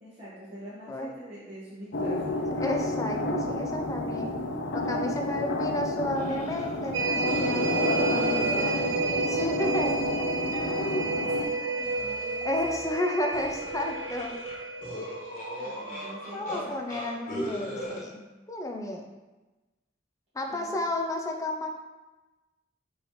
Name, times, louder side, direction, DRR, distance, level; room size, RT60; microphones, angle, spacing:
voice 1, 0.0-2.5 8.0-9.2 9.7-10.9 11.2-13.2 15.6-16.9 20.5-20.9, equal, 30° right, -10 dB, 1.0 m, -44 dB
sound 1, 1.9-11.5, left 2 dB, 70° left, 0.5 m, -30 dB
voice 2, 2.6-4.4 4.7-8.9 9.3-10.0 10.8-11.2 12.4-14.3 16.3-18.2 18.5-19.0 20.3-21.8, left 1 dB, 15° left, 2 dB, 0.5 m, -32 dB
sound 2, 6.2-6.9 7.2-11.5 11.8-13.0 13.3-16.6 16.9-18.0, equal, 40° left, 1.1 m, -39 dB
sound 3, 6.9-16.7 17.1-17.2, right 4 dB, 75° right, 0.3 m, -31 dB
5.8 x 2.8 x 3.2 m, 1.1 s
head